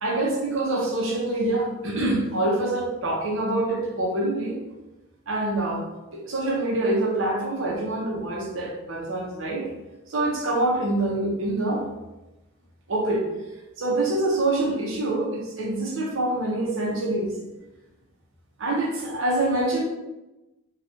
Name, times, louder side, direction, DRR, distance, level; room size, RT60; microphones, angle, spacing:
voice 1, 0.0-4.6 5.3-5.9 6.1-9.7 10.1-11.9 12.9-13.3 13.8-17.4 18.6-19.8, right 2 dB, 65° right, -2 dB, 0.8 m, -25 dB
3.1 x 2.4 x 2.7 m, 1.0 s
head